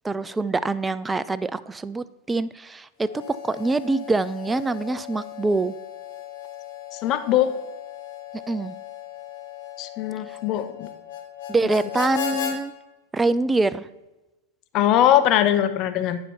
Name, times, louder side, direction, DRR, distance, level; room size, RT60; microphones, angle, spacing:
voice 1, 0.0-5.7 8.5-8.7 10.3-10.4 11.5-12.7 13.1-13.9, right 3 dB, 10° right, 16 dB, 0.3 m, -25 dB
Harmonica, 3.0-12.6, left 10 dB, 55° left, 1.3 m, -36 dB
voice 2, 6.9-7.5 9.8-10.9 14.7-16.2, left 11 dB, 35° left, 9 dB, 0.6 m, -21 dB
9.6 x 5.7 x 4.1 m, 1.0 s
figure-of-eight pair, 90°, 0 cm